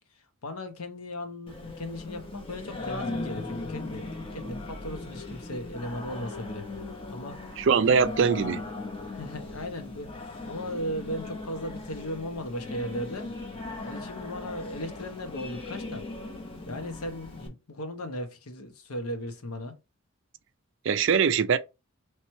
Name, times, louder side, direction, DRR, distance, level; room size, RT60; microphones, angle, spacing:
voice 1, 0.4-7.4 7.8-7.9 9.1-13.3 13.8-16.1 16.7-19.7, equal, 85° left, 0.9 m, -37 dB
Singing, 1.5-17.5, left 2 dB, 25° left, 0.8 m, -38 dB
voice 2, 7.6-8.6 20.8-21.6, right 6 dB, 55° right, 0.4 m, -22 dB
3.2 x 3.1 x 4.3 m
head